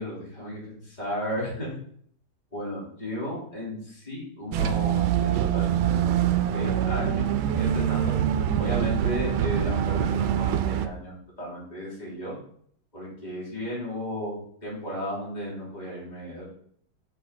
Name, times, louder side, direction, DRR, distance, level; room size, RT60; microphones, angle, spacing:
voice 1, 0.0-1.7 2.5-6.1 6.5-8.1 8.6-12.3 12.9-16.5, equal, 20° left, -7 dB, 3.1 m, -34 dB
sound 1, 4.5-10.9, right 10 dB, 80° right, 1.4 m, -24 dB
6.4 x 6.0 x 3.7 m, 0.63 s
omnidirectional pair, 2.2 m